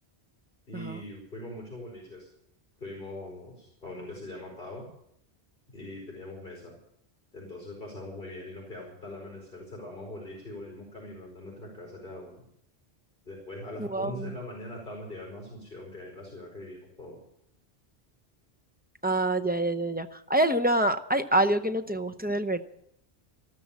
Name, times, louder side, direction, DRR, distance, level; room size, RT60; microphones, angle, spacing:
voice 1, 0.7-2.3 2.8-4.8 5.7-6.8 7.3-12.4 13.2-17.2, left 1 dB, 55° left, -2 dB, 5.1 m, -42 dB
voice 2, 13.9-14.3 19.0-22.6, right 1 dB, 10° right, 6 dB, 0.7 m, -26 dB
14.0 x 13.0 x 7.2 m, 0.74 s
omnidirectional pair, 1.1 m